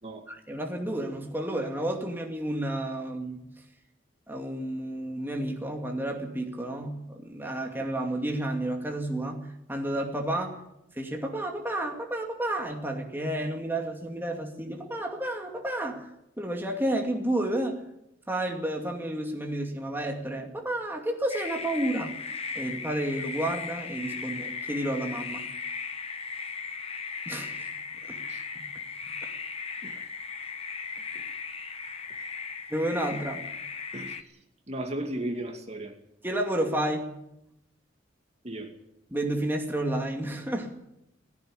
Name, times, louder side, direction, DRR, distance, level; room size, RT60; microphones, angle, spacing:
voice 1, 0.3-3.5 4.3-10.6 11.0-16.1 16.4-17.8 18.3-22.2 22.5-25.4 27.3-27.5 28.1-28.2 28.6-28.7 32.7-33.4 36.2-37.1 39.1-40.7, right 1 dB, 10° right, 1 dB, 2.4 m, -31 dB
sound 1, 21.3-34.2, left 5 dB, 30° left, 1.3 m, -37 dB
voice 2, 34.7-35.9 38.4-38.7, right 1 dB, 35° right, 4 dB, 2.4 m, -36 dB
17.5 x 16.5 x 9.9 m, 0.83 s
head